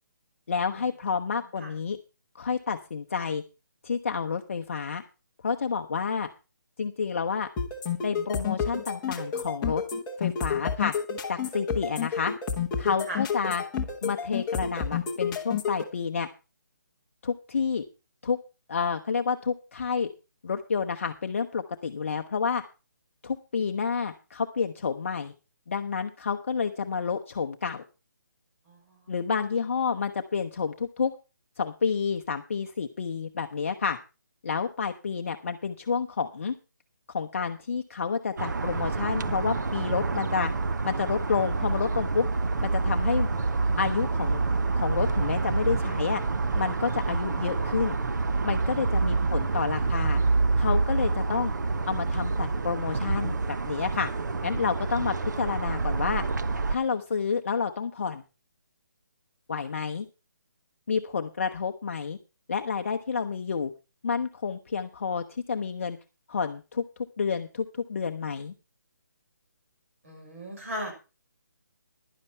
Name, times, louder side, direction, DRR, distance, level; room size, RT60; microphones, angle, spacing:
voice 1, 0.5-2.0 2.3-3.4 3.8-5.0 5.4-6.3 6.8-7.5 8.0-9.8 10.2-10.9 11.3-12.3 12.8-13.6 14.0-16.3 17.2-17.8 18.2-18.4 18.7-20.1 20.4-22.6 23.2-25.3 25.7-27.8 29.1-31.1 31.6-34.0 34.4-36.5 37.1-40.5 40.8-42.3 42.6-43.3 43.8-44.4 44.8-46.2 46.6-47.9 48.4-50.2 50.6-51.5 51.9-54.1 54.4-56.2 56.7-58.2 59.5-60.1 60.9-62.2 62.5-63.7 64.0-66.0 66.3-66.8 67.2-68.5, left 5 dB, 40° left, 5 dB, 0.7 m, -29 dB
voice 2, 1.4-1.7 13.1-13.2 28.7-29.2 49.2-50.6 70.0-70.9, equal, 45° right, 2 dB, 5.5 m, -40 dB
sound 1, 7.6-15.8, left 7 dB, 10° left, 1.0 m, -30 dB
sound 2, 38.4-56.8, right 3 dB, 65° right, 1.0 m, -27 dB
11.5 x 11.0 x 4.4 m, 0.30 s
hypercardioid pair, 175°, 10 cm